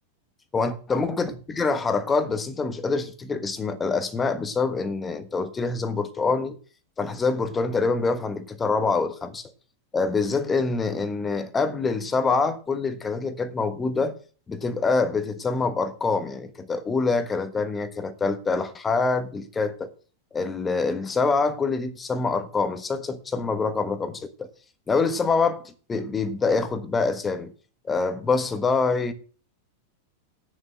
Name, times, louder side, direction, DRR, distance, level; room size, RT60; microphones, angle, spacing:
voice 1, 0.5-6.6 7.0-9.5 9.9-14.2 14.5-19.9 20.3-24.5 24.9-27.5 27.8-29.1, left 4 dB, 15° left, 1.3 m, -25 dB
8.8 x 7.0 x 7.7 m
figure-of-eight pair, 90°, 0 cm